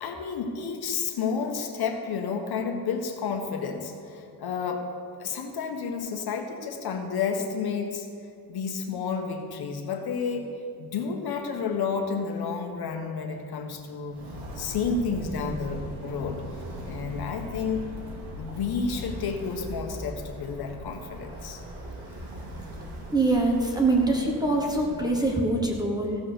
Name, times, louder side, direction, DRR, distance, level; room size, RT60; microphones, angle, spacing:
voice 1, 0.0-4.9 5.2-8.1 8.5-10.5 10.8-14.2 14.5-16.4 16.8-17.8 18.4-21.6, left 5 dB, 65° left, 4 dB, 1.4 m, -31 dB
Walk footsteps, 14.1-25.4, equal, 90° right, 2.6 m, -39 dB
voice 2, 23.1-26.2, right 2 dB, 10° right, -1 dB, 1.1 m, -24 dB
15.0 x 6.2 x 7.0 m, 2.5 s
wide cardioid pair, 180°, 40 cm